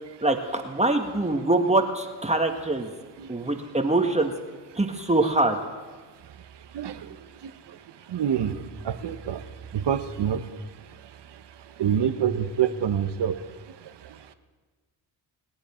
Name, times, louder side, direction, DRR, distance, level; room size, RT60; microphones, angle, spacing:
voice 1, 0.2-2.9 3.3-4.3 4.7-5.6, right 2 dB, 15° right, 4 dB, 1.7 m, -24 dB
voice 2, 8.1-9.4 9.7-10.4 11.8-13.4, right 8 dB, 55° right, 10 dB, 1.2 m, -26 dB
25.0 x 8.9 x 4.4 m, 1.4 s
supercardioid pair, 60°, 49 cm